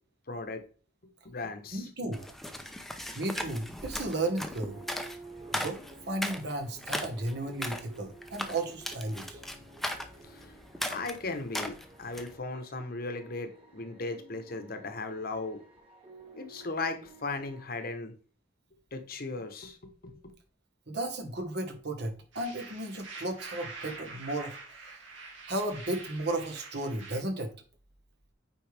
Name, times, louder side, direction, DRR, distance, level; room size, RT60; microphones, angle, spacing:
voice 1, 0.3-0.6 1.2-1.8 10.2-10.5 10.9-15.6 16.4-18.1 18.9-19.8 20.0-20.2, left 3 dB, 50° left, 7 dB, 1.1 m, -37 dB
voice 2, 1.7-2.3 3.1-4.8 5.5-5.8 6.0-9.4 20.9-24.6 24.8-24.9 25.5-27.5, right 2 dB, 60° right, 5 dB, 1.5 m, -34 dB
sound 1, 2.1-12.4, equal, ahead, 0.7 m, -38 dB
sound 2, 4.2-17.9, right 2 dB, 30° right, 2.0 m, -53 dB
sound 3, 22.3-27.2, right 3 dB, 90° right, 2.4 m, -45 dB
8.7 x 4.8 x 3.4 m, 0.38 s
head